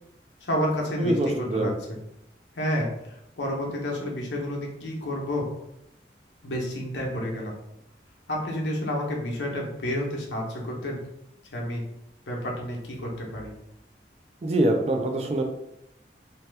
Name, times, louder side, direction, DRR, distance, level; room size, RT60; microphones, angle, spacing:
voice 1, 0.4-2.0 2.6-5.5 6.4-7.5 8.3-11.0 11.5-11.8 12.3-13.5, equal, 80° left, -1 dB, 0.8 m, -30 dB
voice 2, 1.0-1.7 14.4-15.4, right 1 dB, 35° right, 3 dB, 0.3 m, -24 dB
2.8 x 2.2 x 3.3 m, 0.82 s
head